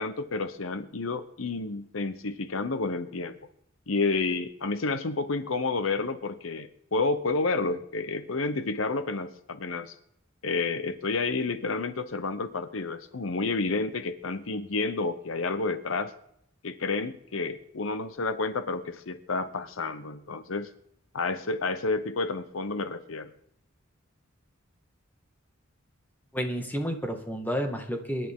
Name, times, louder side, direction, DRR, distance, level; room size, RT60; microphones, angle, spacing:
voice 1, 0.0-3.4 3.9-10.0 10.4-16.1 16.6-20.7 21.1-23.3, left 3 dB, 70° left, 11 dB, 0.9 m, -30 dB
voice 2, 26.3-28.3, equal, 10° left, 3 dB, 1.9 m, -31 dB
24.0 x 11.0 x 3.7 m, 0.73 s
head